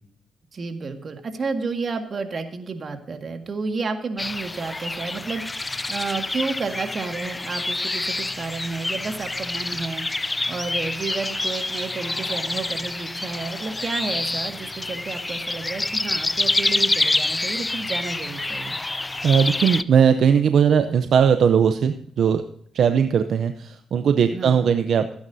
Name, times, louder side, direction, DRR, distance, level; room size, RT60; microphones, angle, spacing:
voice 1, 0.5-5.4 5.9-10.1 10.5-18.8 24.3-24.7, right 4 dB, 50° right, 6 dB, 1.9 m, -31 dB
sound 1, 4.2-19.8, left 2 dB, 20° left, 0.5 m, -27 dB
voice 2, 19.2-22.4 22.7-25.3, right 7 dB, 70° right, 9 dB, 0.7 m, -19 dB
16.5 x 9.6 x 2.7 m, 0.68 s
cardioid pair, 80°, 0 cm